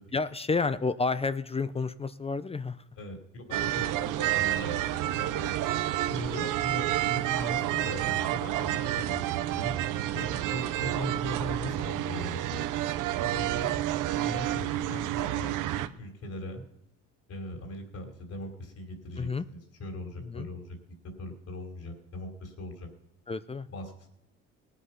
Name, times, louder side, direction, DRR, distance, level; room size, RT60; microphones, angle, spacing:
voice 1, 0.1-2.8 6.1-6.5 13.3-13.7 19.2-19.4 20.2-20.5 23.3-23.7, left 4 dB, 20° left, 15 dB, 0.5 m, -31 dB
voice 2, 2.9-5.5 6.1-9.2 9.5-9.7 10.1-12.6 13.2-16.6 17.3-20.8 21.2-22.9 23.7-24.1, left 1 dB, 50° left, 5 dB, 3.2 m, -40 dB
sound 1, 3.5-15.9, right 13 dB, 75° right, 0.8 m, -29 dB
18.0 x 8.3 x 5.7 m, 0.77 s
cardioid pair, 105°, 32 cm